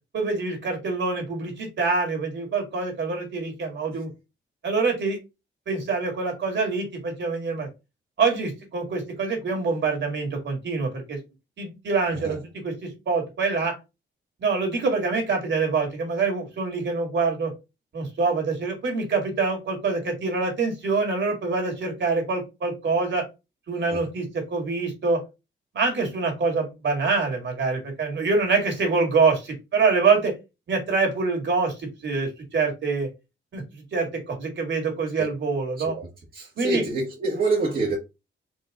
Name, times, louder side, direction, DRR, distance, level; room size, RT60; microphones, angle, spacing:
voice 1, 0.1-4.1 4.6-5.2 5.7-7.7 8.2-11.2 11.6-12.4 12.6-13.7 14.4-17.5 17.9-23.3 23.7-25.2 25.7-30.3 30.7-31.7 32.0-33.1 33.5-33.6 33.9-35.9 36.6-36.8, right 4 dB, 65° right, 2.1 m, -25 dB
voice 2, 35.8-38.0, right 3 dB, 45° right, 1.3 m, -27 dB
4.5 x 3.0 x 3.7 m
wide cardioid pair, 115°, 20 cm